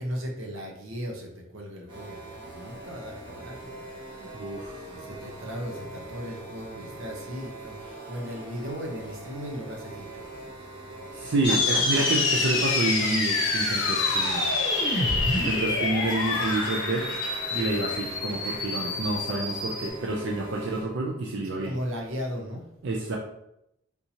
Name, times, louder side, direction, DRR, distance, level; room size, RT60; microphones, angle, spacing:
voice 1, 0.0-3.9 4.9-10.2 11.2-12.3 15.0-15.4 17.8-18.1 21.4-22.6, equal, 85° right, 0 dB, 0.8 m, -37 dB
sound 1, 1.9-20.8, right 2 dB, 25° right, 0.8 m, -42 dB
voice 2, 4.2-4.8 11.1-14.5 15.3-17.0 17.5-21.7 22.8-23.2, right 2 dB, 60° right, -1 dB, 0.4 m, -29 dB
sound 2, 11.4-19.9, left 3 dB, 65° left, 0.7 m, -27 dB
sound 3, 11.9-19.1, left 1 dB, 20° left, 1.1 m, -42 dB
3.6 x 2.7 x 2.8 m, 0.80 s
head